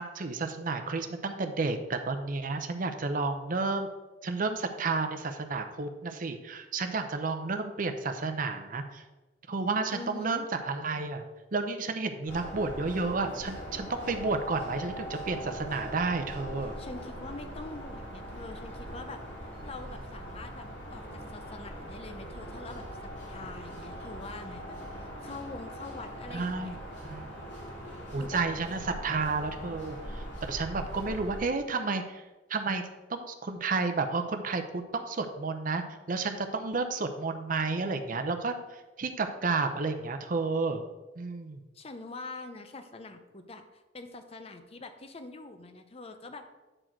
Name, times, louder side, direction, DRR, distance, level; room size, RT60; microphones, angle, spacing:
voice 1, 0.0-3.9 4.2-9.0 9.5-11.2 11.5-16.7 26.3-26.7 27.0-27.3 28.1-32.2 32.5-32.8 33.1-40.8 41.2-41.6, right 3 dB, 50° right, 7 dB, 0.7 m, -31 dB
voice 2, 9.9-10.5 16.6-19.2 19.6-26.8 28.2-28.4 41.7-46.5, left 3 dB, 35° left, 7 dB, 0.6 m, -44 dB
sound 1, 12.3-31.4, equal, 80° left, 2.3 m, -41 dB
8.8 x 4.4 x 4.5 m, 1.1 s
head